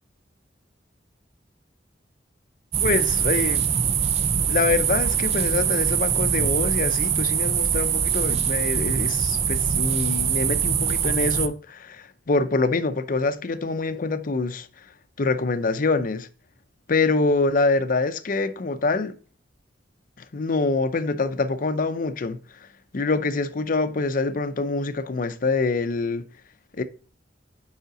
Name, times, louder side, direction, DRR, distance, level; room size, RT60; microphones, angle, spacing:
sound 1, 2.7-11.5, right 8 dB, 35° right, 0.4 m, -23 dB
voice 1, 2.8-3.7 4.5-14.7 15.2-16.3 16.9-19.2 20.2-22.7 22.9-26.2 26.7-26.8, left 3 dB, 50° left, 0.6 m, -25 dB
5.4 x 4.9 x 4.9 m
head